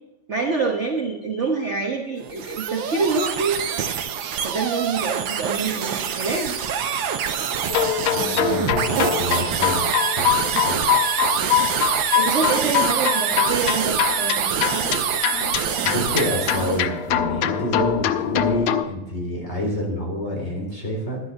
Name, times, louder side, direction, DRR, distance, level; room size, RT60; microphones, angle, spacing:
voice 1, 0.3-3.6 4.4-6.6 12.1-14.5, right 4 dB, 40° right, 1 dB, 1.2 m, -26 dB
sound 1, 2.2-16.8, right 8 dB, 65° right, 1.6 m, -25 dB
sound 2, 7.7-18.8, left 11 dB, 85° left, 1.6 m, -24 dB
voice 2, 8.1-9.8 10.2-11.0 15.8-21.2, equal, 30° left, -1 dB, 3.9 m, -28 dB
11.0 x 10.5 x 4.0 m, 0.95 s
omnidirectional pair, 2.3 m